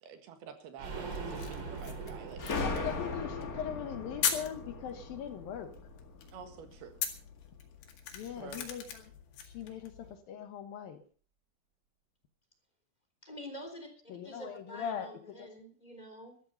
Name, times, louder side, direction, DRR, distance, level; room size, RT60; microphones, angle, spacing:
voice 1, 0.0-2.4 2.7-2.9 6.3-7.0 8.2-8.7 9.7-9.8, right 7 dB, 75° right, 8 dB, 3.5 m, -48 dB
sound 1, 0.8-6.4 6.7-6.8 7.1-7.2, right 4 dB, 35° right, 2.3 m, -44 dB
sound 2, 1.1-10.2, left 8 dB, 90° left, 4.1 m, -41 dB
sound 3, 2.4-6.8, left 3 dB, 40° left, 1.3 m, -38 dB
voice 2, 2.6-5.7 8.1-9.0 9.4-11.0 14.1-15.1 15.4-15.5, left 8 dB, 70° left, 8 dB, 2.9 m, -40 dB
voice 3, 13.2-16.4, equal, 10° left, 4 dB, 3.1 m, -47 dB
14.0 x 13.5 x 5.4 m, 0.41 s
omnidirectional pair, 4.7 m